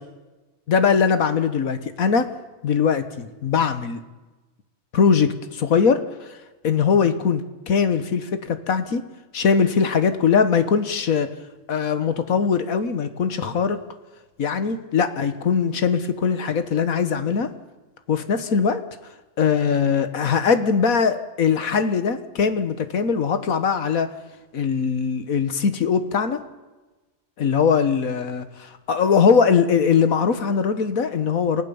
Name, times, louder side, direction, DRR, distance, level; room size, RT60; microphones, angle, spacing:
voice 1, 0.7-2.3 2.6-4.0 4.9-6.4 6.6-9.0 9.3-11.3 11.7-13.8 14.4-17.5 18.1-18.8 19.4-24.1 24.5-26.4 27.4-31.6, left 6 dB, 85° left, 10 dB, 1.7 m, -21 dB
29.0 x 16.5 x 7.1 m, 1.1 s
omnidirectional pair, 1.4 m